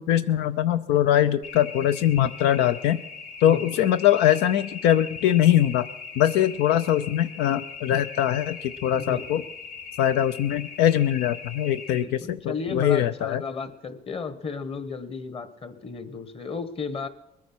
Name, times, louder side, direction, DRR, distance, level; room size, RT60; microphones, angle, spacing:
voice 1, 0.0-3.0 3.4-5.9 6.2-9.4 10.0-13.4, left 11 dB, 90° left, 12 dB, 0.6 m, -22 dB
sound 1, 1.4-12.0, left 5 dB, 75° left, 2.7 m, -40 dB
voice 2, 9.0-9.5 11.9-17.1, left 4 dB, 35° left, 10 dB, 1.5 m, -34 dB
20.5 x 9.6 x 6.1 m, 0.88 s
cardioid pair, 110°, 17 cm